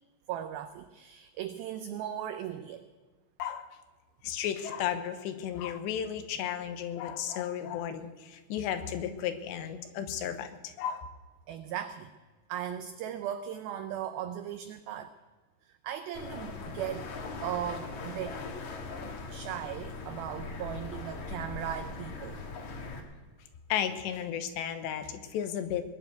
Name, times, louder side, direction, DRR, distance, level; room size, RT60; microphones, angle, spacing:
voice 1, 0.3-2.8 11.5-12.1 12.5-15.1 15.7-17.1 17.4-18.4 19.3-22.4, right 10 dB, 90° right, 9 dB, 2.1 m, -37 dB
voice 2, 3.4-3.8 4.2-11.1 23.7-25.8, left 9 dB, 80° left, 8 dB, 3.2 m, -34 dB
sound 1, 16.1-23.0, left 3 dB, 55° left, 2.5 m, -40 dB
20.5 x 7.0 x 9.1 m, 1.3 s
omnidirectional pair, 5.1 m